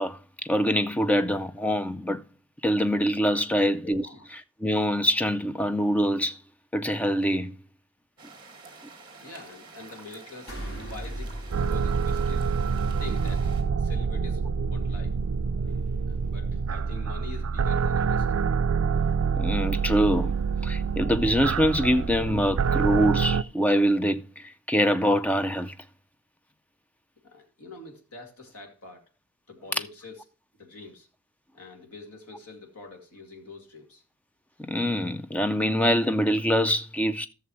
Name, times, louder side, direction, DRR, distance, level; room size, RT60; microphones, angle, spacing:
voice 1, 0.0-2.2 2.6-6.4 6.7-7.6 15.6-15.8 19.3-25.7 34.6-37.3, equal, 5° left, 0.4 m, -25 dB
sound 1, 8.2-13.6, right 3 dB, 20° right, 1.9 m, -48 dB
voice 2, 9.2-12.5 13.0-13.5 13.8-15.2 16.1-18.4 27.2-29.0 29.5-30.2 30.6-31.1 31.5-34.0, left 3 dB, 85° left, 2.4 m, -45 dB
sound 2, 10.5-13.0, right 1 dB, 60° left, 5.6 m, -38 dB
sound 3, 11.5-23.4, right 5 dB, 65° right, 0.4 m, -26 dB
14.5 x 6.8 x 3.1 m
head